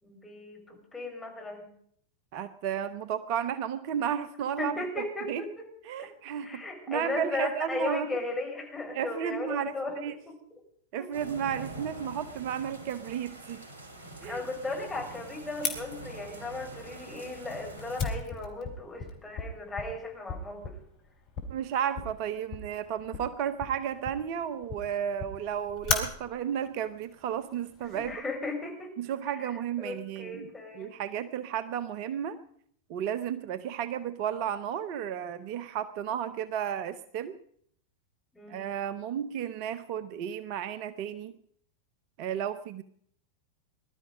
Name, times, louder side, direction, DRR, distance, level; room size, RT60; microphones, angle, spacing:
voice 1, 0.0-1.7 4.6-5.6 6.0-6.1 6.4-10.3 11.0-11.1 14.2-20.8 27.9-28.9 29.4-29.5 29.8-30.9 38.3-38.6, left 2 dB, 10° left, 0 dB, 5.0 m, -36 dB
voice 2, 2.3-5.4 5.8-8.1 8.9-9.7 10.0-10.1 10.9-13.6 14.2-14.4 21.5-28.2 29.0-32.4 32.9-37.4 38.5-41.4 42.2-42.8, right 9 dB, 45° right, 14 dB, 0.8 m, -33 dB
sound 1, 11.1-18.0, right 2 dB, 85° left, 3.6 m, -45 dB
Fire, 15.6-28.1, left 5 dB, 40° left, 3.4 m, -38 dB
20.5 x 12.5 x 5.1 m, 0.64 s
figure-of-eight pair, 90°, 0 cm